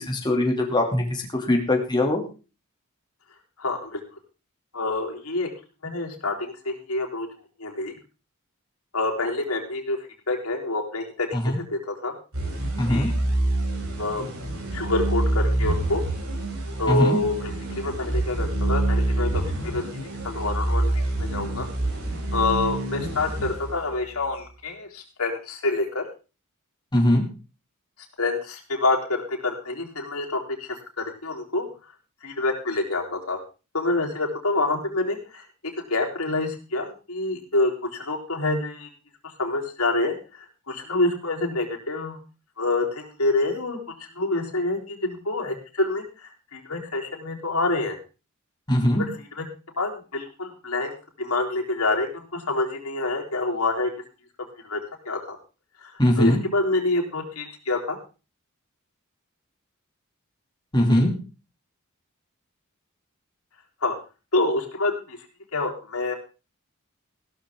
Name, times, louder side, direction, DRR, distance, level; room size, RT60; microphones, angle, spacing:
voice 1, 0.0-2.2 11.3-11.6 12.8-13.1 16.9-17.2 26.9-27.2 48.7-49.0 56.0-56.4 60.7-61.1, left 1 dB, 20° left, 1 dB, 2.8 m, -21 dB
voice 2, 3.6-4.0 4.7-5.5 5.8-7.3 7.6-7.9 8.9-10.0 10.3-11.3 11.5-12.1 12.9-13.1 14.0-14.2 14.7-16.0 16.8-19.8 20.3-21.7 22.3-26.0 28.2-31.7 32.2-33.4 33.7-35.4 35.9-38.9 39.4-42.2 42.6-48.0 49.0-49.4 49.8-53.9 54.6-54.8 55.1-55.4 55.8-58.0 63.8-63.9 64.3-65.2 65.5-66.1, left 2 dB, 85° left, 0 dB, 4.0 m, -27 dB
sound 1, 12.3-24.2, right 1 dB, 85° right, 6.3 m, -27 dB
16.0 x 13.0 x 3.8 m, 0.33 s
head